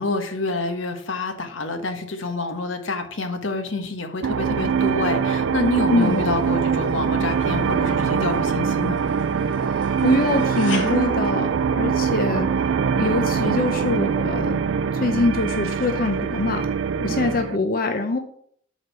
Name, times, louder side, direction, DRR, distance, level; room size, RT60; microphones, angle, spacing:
voice 1, 0.0-9.0, left 2 dB, 85° left, 6 dB, 1.2 m, -27 dB
sound 1, 4.2-17.6, right 6 dB, 90° right, 0.4 m, -23 dB
voice 2, 5.9-6.2 9.7-12.5 12.9-14.6 14.9-16.7 17.0-18.2, left 2 dB, 50° left, 6 dB, 0.6 m, -24 dB
sound 2, 6.0-12.3, left 4 dB, 70° left, 1.7 m, -40 dB
6.5 x 4.9 x 6.8 m, 0.64 s
head